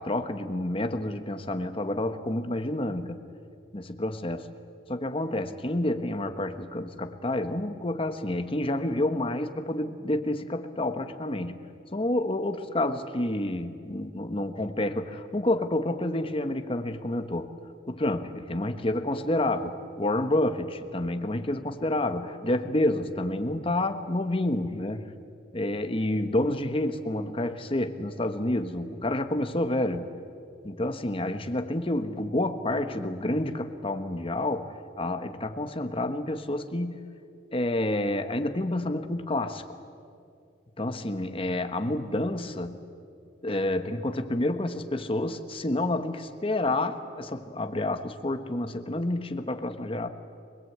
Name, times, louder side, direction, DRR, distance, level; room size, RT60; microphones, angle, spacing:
voice 1, 0.0-3.2 3.7-4.5 4.9-11.6 11.9-17.5 17.9-25.1 25.5-30.1 30.6-37.1 37.5-39.8 40.8-42.8 43.4-50.1, left 1 dB, 30° left, 7 dB, 1.3 m, -29 dB
25.5 x 21.0 x 8.7 m, 2.5 s
head